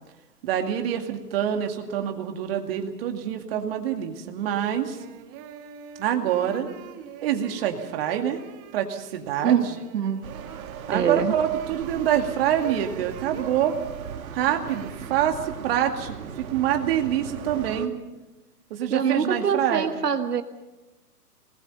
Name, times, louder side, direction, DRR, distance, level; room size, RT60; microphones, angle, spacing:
voice 1, 0.4-5.0 6.0-6.7 7.2-8.4 8.7-9.8 10.9-13.8 14.3-17.9 18.7-19.9, right 10 dB, 35° right, 4 dB, 2.3 m, -26 dB
sound 1, 4.9-14.2 14.6-14.9, right 8 dB, 20° right, 1.1 m, -42 dB
sound 2, 10.2-17.9, right 8 dB, 60° right, 1.9 m, -39 dB
voice 2, 10.9-11.3 18.9-20.4, right 7 dB, 75° right, 8 dB, 1.5 m, -24 dB
27.0 x 20.0 x 5.5 m, 1.1 s
hypercardioid pair, 145°, 48 cm